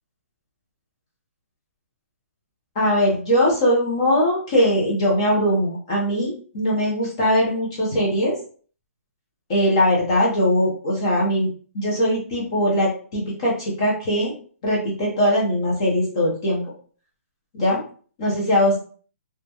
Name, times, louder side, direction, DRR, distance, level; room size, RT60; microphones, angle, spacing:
voice 1, 2.8-8.4 9.5-11.5 11.7-14.3 14.6-16.6 17.5-17.8 18.2-18.8, equal, 20° left, -4 dB, 0.5 m, -21 dB
2.2 x 2.0 x 2.8 m, 0.43 s
hypercardioid pair, 180°, 8 cm